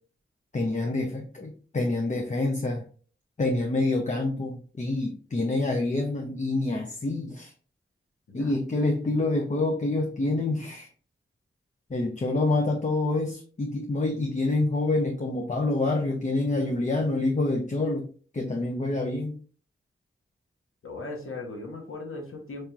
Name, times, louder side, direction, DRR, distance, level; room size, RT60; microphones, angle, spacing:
voice 1, 0.5-2.8 3.4-7.5 8.3-10.9 11.9-18.0 18.3-19.4, left 2 dB, 35° left, 2 dB, 0.6 m, -27 dB
voice 2, 20.8-22.7, left 2 dB, 90° left, 1 dB, 1.0 m, -38 dB
4.7 x 2.8 x 2.4 m, 0.43 s
cardioid pair, 50°, 21 cm